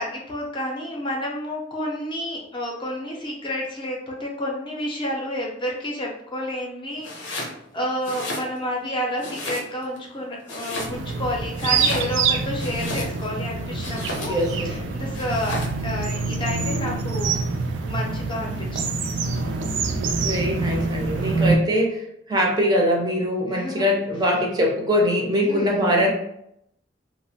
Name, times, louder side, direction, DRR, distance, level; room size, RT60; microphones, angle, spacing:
voice 1, 0.0-14.3 14.6-17.3 17.9-19.1 21.1-21.5 23.5-23.9 25.4-25.9, left 1 dB, 25° left, -1 dB, 0.5 m, -30 dB
Domestic sounds home sounds, 7.0-7.6 8.0-8.8 9.2-10.0 10.4-11.2 11.5-13.4 13.8-14.5 15.1-15.8, left 1 dB, 90° left, 0.7 m, -34 dB
sound 1, 10.8-21.6, right 4 dB, 85° right, 0.3 m, -26 dB
voice 2, 14.2-14.7 20.2-26.1, equal, 25° right, -1 dB, 0.5 m, -22 dB
2.8 x 2.0 x 2.7 m, 0.75 s
head